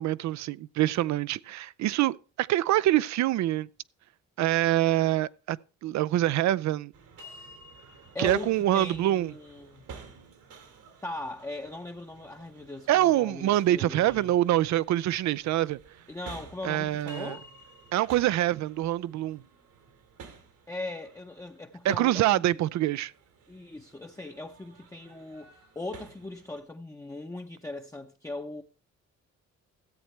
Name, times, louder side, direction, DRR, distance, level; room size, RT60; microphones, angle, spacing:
voice 1, 0.0-3.7 4.4-5.6 5.8-6.9 8.2-9.3 12.9-15.8 16.6-17.4 17.9-19.4 21.8-23.1, right 14 dB, 70° right, 0.4 m, -25 dB
sound 1, 6.9-26.6, right 4 dB, 85° right, 2.6 m, -51 dB
voice 2, 8.1-9.8 11.0-14.3 16.1-17.4 20.7-22.5 23.5-28.6, left 2 dB, 10° left, 0.7 m, -39 dB
14.0 x 7.8 x 3.2 m
cardioid pair, 90°, 30 cm